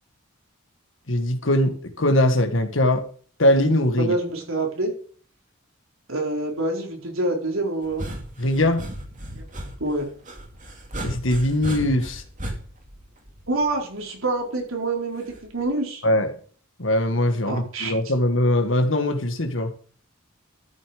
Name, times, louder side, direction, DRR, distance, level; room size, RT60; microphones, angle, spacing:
voice 1, 1.1-3.0 3.4-4.1 8.4-8.8 11.0-12.2 16.0-16.3 16.8-19.7, left 1 dB, 65° left, 1.8 m, -21 dB
voice 2, 4.0-4.9 6.1-8.1 9.8-10.1 13.5-15.3 15.5-16.0 17.4-18.1, right 2 dB, 75° right, 4.3 m, -26 dB
sound 1, 7.8-13.9 15.3-15.7, right 1 dB, 35° right, 2.6 m, -35 dB
13.5 x 7.2 x 5.0 m
head